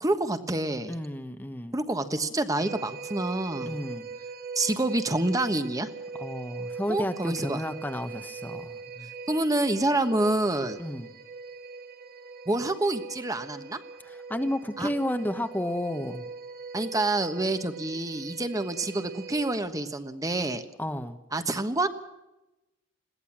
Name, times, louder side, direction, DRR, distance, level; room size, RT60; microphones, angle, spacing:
voice 1, 0.0-0.9 1.7-3.8 4.5-5.9 6.9-7.6 9.3-10.8 12.5-13.8 14.8-14.9 16.7-20.6 21.3-21.9, right 2 dB, 15° right, 9 dB, 1.3 m, -27 dB
voice 2, 0.9-1.8 3.6-4.1 6.1-9.1 10.8-11.1 14.0-16.2 20.8-21.2, left 1 dB, 10° left, 7 dB, 1.1 m, -32 dB
sound 1, 2.6-19.6, right 4 dB, 50° right, 2.0 m, -41 dB
21.5 x 17.0 x 7.3 m, 0.95 s
head